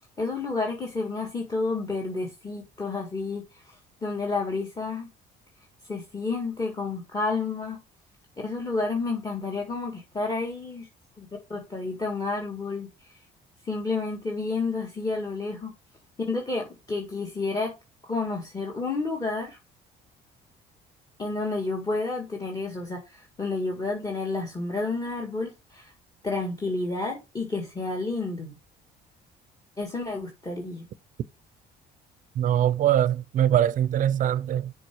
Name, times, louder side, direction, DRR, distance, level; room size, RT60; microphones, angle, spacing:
voice 1, 0.2-5.1 5.9-7.8 8.4-10.9 11.2-13.1 13.6-15.7 16.3-17.7 18.1-19.6 21.2-25.9 26.2-28.5 29.8-30.8, left 3 dB, 20° left, 1.9 m, -30 dB
voice 2, 32.4-34.7, right 10 dB, 50° right, 0.6 m, -22 dB
6.9 x 5.0 x 4.5 m
cardioid pair, 110°, 17 cm